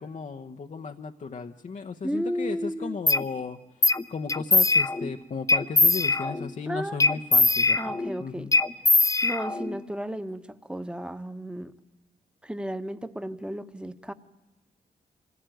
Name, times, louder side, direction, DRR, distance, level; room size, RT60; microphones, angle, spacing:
voice 1, 0.0-3.6 4.1-7.8 8.2-8.5, left 5 dB, 50° left, 5 dB, 0.9 m, -35 dB
voice 2, 2.0-3.0 6.7-7.0 7.8-8.5 9.2-11.7 12.4-14.1, equal, 5° right, 11 dB, 1.2 m, -33 dB
sound 1, 3.1-3.2 3.8-4.0 4.3-5.1 5.5-6.5 7.0-8.1 8.5-9.8, left 2 dB, 20° left, 0.9 m, -21 dB
24.0 x 16.0 x 9.1 m, 1.2 s
cardioid pair, 65°, 16 cm